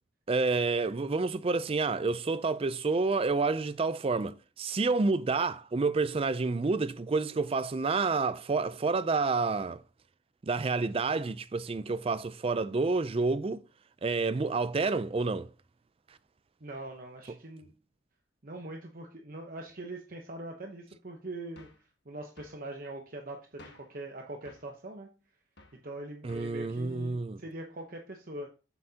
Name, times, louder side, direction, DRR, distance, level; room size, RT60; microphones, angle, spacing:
voice 1, 0.3-9.8 10.4-13.6 14.0-15.5 26.2-27.4, right 3 dB, 30° right, 0.4 m, -29 dB
voice 2, 16.6-17.7 18.4-21.7 22.0-25.1 25.8-28.5, right 1 dB, 50° right, 0.9 m, -42 dB
sound 1, 21.6-21.9 22.4-22.6 23.6-24.0 24.5-24.7 25.6-25.8 26.3-26.6, left 2 dB, 60° left, 1.3 m, -54 dB
7.7 x 7.7 x 2.8 m
head